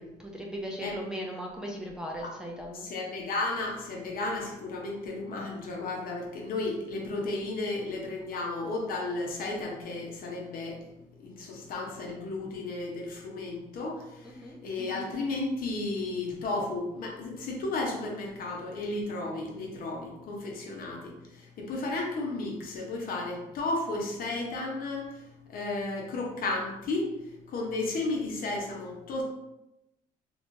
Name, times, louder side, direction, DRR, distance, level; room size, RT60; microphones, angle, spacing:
voice 1, 0.2-2.9 14.2-14.6, equal, 5° right, -2 dB, 0.5 m, -38 dB
voice 2, 2.7-10.8 11.2-29.2, left 2 dB, 60° left, 0 dB, 0.9 m, -33 dB
3.1 x 3.0 x 2.7 m, 0.92 s
cardioid pair, 110°, 17 cm